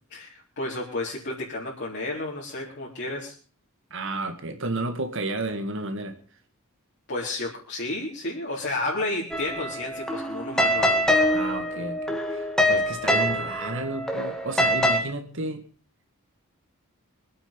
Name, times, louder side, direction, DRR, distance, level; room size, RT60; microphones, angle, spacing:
voice 1, 0.1-3.3 7.1-11.1, left 2 dB, 50° left, -6 dB, 4.4 m, -31 dB
voice 2, 3.9-6.2 11.3-15.6, right 2 dB, 60° right, 7 dB, 2.1 m, -32 dB
sound 1, 9.3-15.0, equal, 5° left, 2.1 m, -24 dB
25.0 x 9.2 x 5.3 m, 0.40 s
head